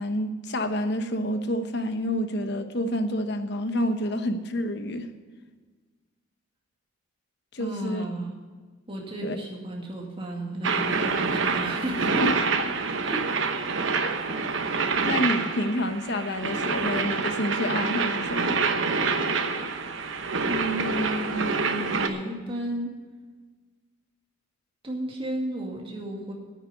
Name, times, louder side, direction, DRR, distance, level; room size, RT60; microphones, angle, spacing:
voice 1, 0.0-5.1 7.5-8.1 9.2-9.4 12.2-12.3 14.0-14.1 15.0-18.6, left 1 dB, 55° left, 8 dB, 0.9 m, -28 dB
voice 2, 7.6-8.3 8.9-12.2 13.0-13.3 20.5-22.9 24.8-26.3, right 1 dB, 25° right, -1 dB, 2.1 m, -33 dB
sound 1, 10.6-22.1, right 4 dB, 65° right, 1.0 m, -27 dB
9.2 x 9.0 x 9.6 m, 1.4 s
head